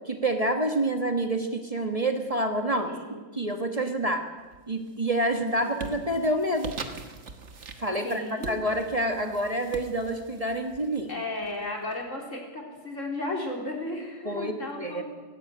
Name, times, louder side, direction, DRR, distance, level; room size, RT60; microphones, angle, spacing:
voice 1, 0.0-2.9 3.3-4.3 4.7-6.7 7.8-11.1 14.2-14.5 14.8-15.0, right 1 dB, 30° right, 5 dB, 1.5 m, -27 dB
voice 2, 2.8-3.2 5.6-6.0 8.0-8.6 11.1-15.0, left 2 dB, 70° left, 1 dB, 4.2 m, -35 dB
sound 1, 4.4-4.9 5.3-11.9, right 4 dB, 60° right, 1.7 m, -43 dB
17.5 x 17.0 x 9.0 m, 1.3 s
omnidirectional pair, 1.4 m